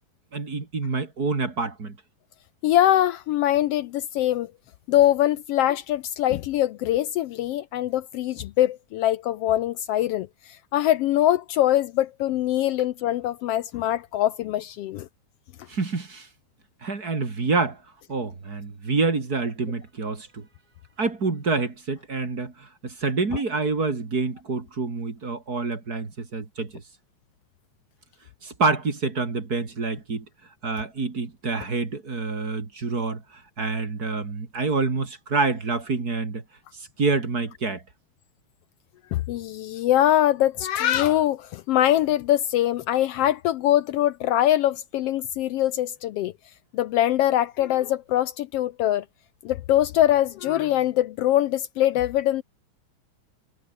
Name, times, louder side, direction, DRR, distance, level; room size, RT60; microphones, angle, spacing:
voice 1, 0.3-2.0 15.7-16.3 16.8-17.8 18.1-20.5 21.0-26.8 28.4-30.3 30.6-36.4 36.8-37.8, right 4 dB, 30° right, 3.1 m, -27 dB
voice 2, 2.6-4.5 4.9-15.1 39.1-46.3 46.7-49.0 49.4-52.4, left 13 dB, 80° left, 1.4 m, -23 dB
omnidirectional pair, 3.4 m